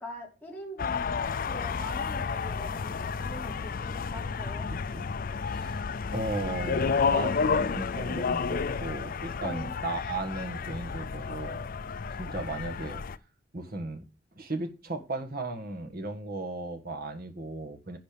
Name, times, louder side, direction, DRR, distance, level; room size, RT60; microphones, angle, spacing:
voice 1, 0.0-4.7 9.4-9.7, left 1 dB, 10° left, 3.2 m, -43 dB
sound 1, 0.8-13.2, left 5 dB, 50° left, 0.5 m, -31 dB
voice 2, 5.5-5.8 6.1-11.7 12.2-13.0 13.5-14.0 14.3-18.0, right 2 dB, 55° right, 1.5 m, -36 dB
10.5 x 4.2 x 6.8 m
head